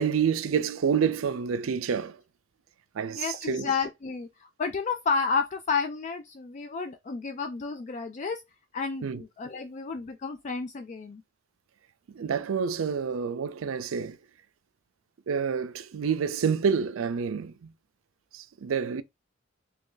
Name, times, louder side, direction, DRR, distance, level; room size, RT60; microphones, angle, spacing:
voice 1, 0.0-2.2 2.9-3.7 9.0-9.2 12.1-14.2 15.3-17.7 18.3-19.0, right 6 dB, 85° right, 0.4 m, -28 dB
voice 2, 3.1-4.3 4.6-8.4 8.7-11.2, left 5 dB, 35° left, 0.3 m, -31 dB
2.9 x 2.6 x 3.8 m
head